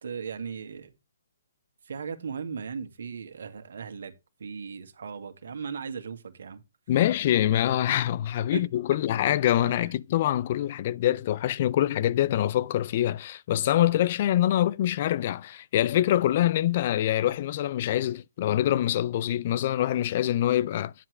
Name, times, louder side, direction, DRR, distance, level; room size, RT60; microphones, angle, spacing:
voice 1, 0.0-0.9 1.9-4.1 4.4-6.6 8.5-8.6 9.6-9.9, right 6 dB, 65° right, 1.9 m, -37 dB
voice 2, 6.9-20.9, left 12 dB, 45° left, 0.4 m, -25 dB
10.0 x 7.5 x 3.3 m
figure-of-eight pair, 135°, 0 cm